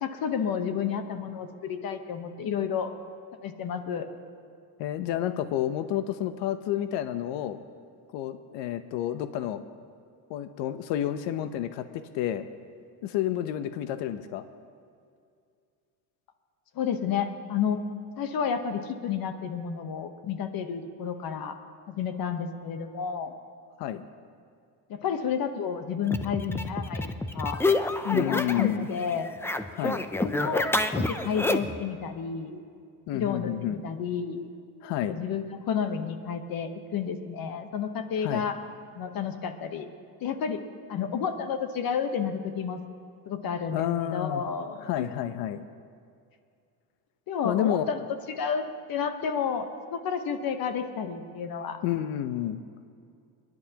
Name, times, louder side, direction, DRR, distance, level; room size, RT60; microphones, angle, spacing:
voice 1, 0.0-2.9 3.4-4.1 16.7-17.8 18.2-21.6 21.9-23.3 24.9-27.6 28.0-29.4 30.2-32.6 33.1-34.5 35.1-38.6 39.0-39.9 40.2-40.6 40.9-42.8 43.3-45.0 47.3-48.0 48.3-51.8, left 7 dB, 50° left, 8 dB, 1.1 m, -31 dB
voice 2, 4.8-7.6 8.1-9.6 10.3-12.5 13.0-14.4 23.8-24.0 28.1-28.9 29.7-30.0 33.1-33.8 34.8-35.2 38.2-38.4 43.7-44.4 44.8-45.6 47.4-47.9 51.8-52.6, left 11 dB, 70° left, 10 dB, 0.8 m, -30 dB
sound 1, 26.1-28.8 29.0-31.8, left 2 dB, 5° left, 0.4 m, -28 dB
28.0 x 10.5 x 2.9 m, 2.3 s
supercardioid pair, 105°, 46 cm